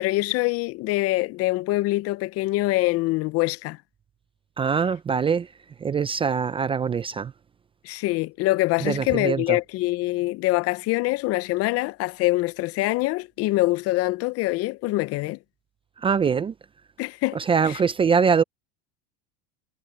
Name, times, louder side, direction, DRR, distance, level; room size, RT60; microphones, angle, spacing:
voice 1, 0.0-3.8 7.8-15.4 17.0-17.4 17.7-17.8, left 19 dB, 45° left, 0.6 m, -24 dB
voice 2, 4.6-5.5 5.8-7.3 8.8-9.6 16.0-16.5 17.3-18.4, right 6 dB, 15° right, 0.4 m, -23 dB
supercardioid pair, 130°, 33 cm